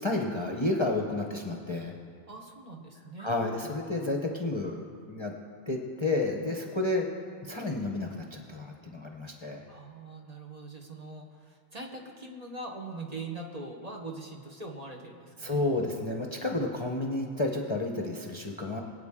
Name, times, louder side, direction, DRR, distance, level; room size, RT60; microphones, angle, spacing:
voice 1, 0.0-2.0 3.2-5.3 5.7-7.1 7.4-9.6 15.4-18.8, left 2 dB, 25° left, 1 dB, 0.8 m, -31 dB
voice 2, 2.3-3.3 9.7-15.6, right 2 dB, 35° right, 0 dB, 1.2 m, -42 dB
22.5 x 8.4 x 3.7 m, 2.2 s
omnidirectional pair, 1.2 m